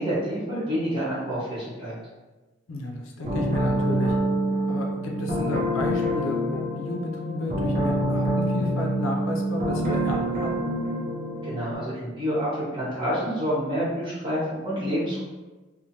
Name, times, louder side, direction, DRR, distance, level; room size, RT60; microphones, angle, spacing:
voice 1, 0.0-1.9 11.4-15.3, equal, 25° right, -10 dB, 1.1 m, -28 dB
voice 2, 2.7-4.1 4.7-10.5, equal, 75° left, 1 dB, 0.5 m, -33 dB
sound 1, 3.2-11.7, equal, 40° right, 0.6 m, -26 dB
3.1 x 2.1 x 2.7 m, 1.2 s
head